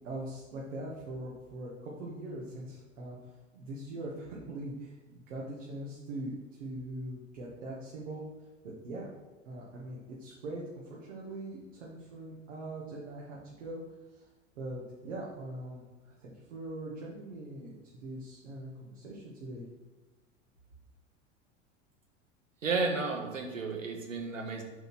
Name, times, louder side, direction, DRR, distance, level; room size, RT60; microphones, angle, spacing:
voice 1, 0.0-3.2 3.5-6.3 6.6-8.2 8.8-9.1 9.5-13.8 14.1-14.3 14.6-19.6, right 1 dB, 70° right, -4 dB, 1.9 m, -42 dB
voice 2, 22.6-24.6, right 4 dB, 85° right, 2 dB, 1.6 m, -32 dB
8.0 x 4.3 x 6.2 m, 1.2 s
figure-of-eight pair, 85°, 38 cm